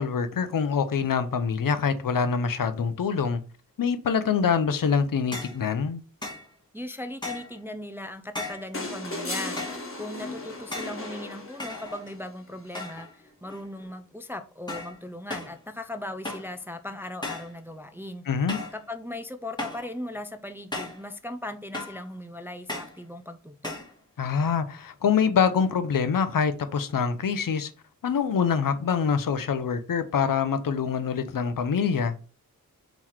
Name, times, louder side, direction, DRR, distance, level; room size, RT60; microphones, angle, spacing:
voice 1, 0.0-3.4 3.8-6.0 18.3-18.6 24.2-27.7 28.0-32.2, left 6 dB, 65° left, 0.6 m, -25 dB
sound 1, 5.3-5.6 6.2-6.5 7.2-7.6 8.3-8.7 9.6-9.9 10.7-11.0 11.6-12.2 12.7-13.1 13.4-13.9 14.7-15.0 15.3-15.6 16.2-16.6 17.2-17.6 18.5-18.8 19.6-19.9 20.7-21.1 21.7-22.1 22.7-23.0 23.6-23.9, left 2 dB, 10° left, 1.2 m, -36 dB
voice 2, 6.7-9.6 10.0-18.2 18.7-23.7, left 1 dB, 5° right, 0.3 m, -38 dB
sound 2, 8.7-12.1 13.6-13.7, left 2 dB, 35° left, 1.2 m, -36 dB
3.9 x 3.0 x 4.3 m
wide cardioid pair, 80°, 36 cm